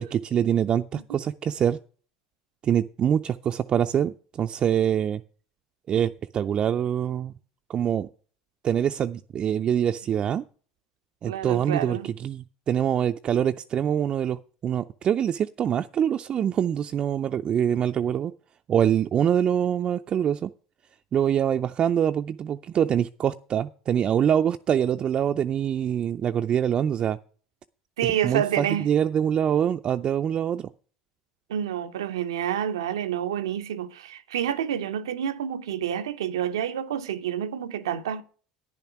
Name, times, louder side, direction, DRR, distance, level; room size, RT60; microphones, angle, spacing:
voice 1, 0.0-1.8 2.6-5.2 5.9-7.3 7.7-8.1 8.6-10.4 11.2-18.3 18.7-20.5 21.1-27.2 28.0-30.7, right 9 dB, 40° right, 0.5 m, -24 dB
voice 2, 11.3-12.1 28.0-28.9 31.5-38.2, right 10 dB, 85° right, 0.6 m, -28 dB
10.0 x 7.2 x 5.8 m
hypercardioid pair, 75°, 2 cm